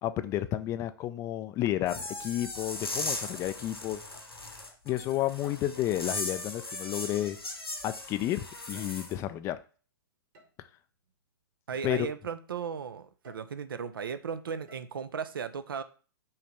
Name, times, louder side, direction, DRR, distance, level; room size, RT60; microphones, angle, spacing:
voice 1, 0.0-4.0 4.9-7.4 7.8-9.6 11.8-12.1, left 13 dB, 25° left, 0.4 m, -31 dB
sound 1, 1.9-9.1, left 2 dB, 85° left, 2.1 m, -38 dB
sound 2, 2.1-2.4 2.8-3.1 4.1-4.4 5.4-5.9 7.0-7.7 8.7-9.1 10.3-10.5 11.0-11.1 11.7-12.1 13.2-13.6 14.7-14.9, left 1 dB, 50° right, 2.1 m, -57 dB
voice 2, 11.7-15.8, right 6 dB, 65° right, 0.7 m, -36 dB
5.6 x 3.3 x 5.5 m
figure-of-eight pair, 105°, 12 cm